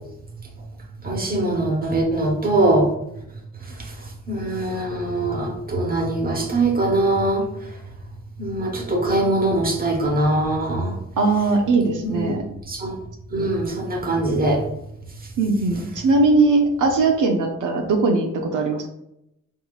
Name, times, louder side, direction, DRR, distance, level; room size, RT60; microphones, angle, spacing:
voice 1, 1.0-2.9 3.6-7.7 8.4-11.0 12.0-12.4 12.7-13.0 13.3-14.7, right 2 dB, 30° right, 0 dB, 1.1 m, -22 dB
voice 2, 11.2-12.4 15.4-18.9, right 3 dB, 75° right, 2 dB, 0.6 m, -20 dB
4.2 x 3.7 x 2.3 m, 0.82 s
cardioid pair, 85°, 31 cm